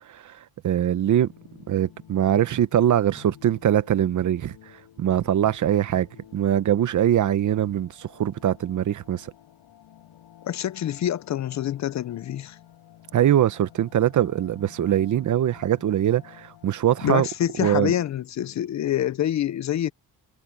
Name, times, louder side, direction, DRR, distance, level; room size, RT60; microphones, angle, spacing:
voice 1, 0.1-0.4 0.6-1.3 1.7-4.6 5.0-6.1 6.3-9.3 13.1-17.3 17.6-17.9, right 11 dB, 50° right, 0.8 m, -22 dB
sound 1, 1.0-18.1, left 11 dB, 85° left, 6.7 m, -51 dB
voice 2, 10.4-12.6 17.0-19.9, left 11 dB, 45° left, 0.5 m, -26 dB
wide cardioid pair, 175°, 39 cm